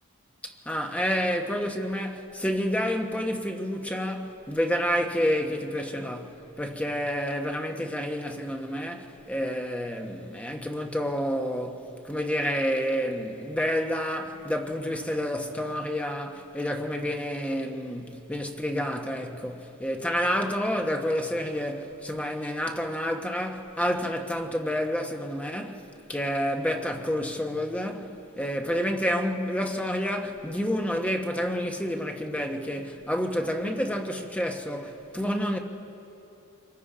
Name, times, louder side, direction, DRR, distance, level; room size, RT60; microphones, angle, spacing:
voice 1, 0.4-25.8 26.1-35.6, equal, 5° left, 1.2 m, -29 dB
26.0 x 23.5 x 5.0 m
head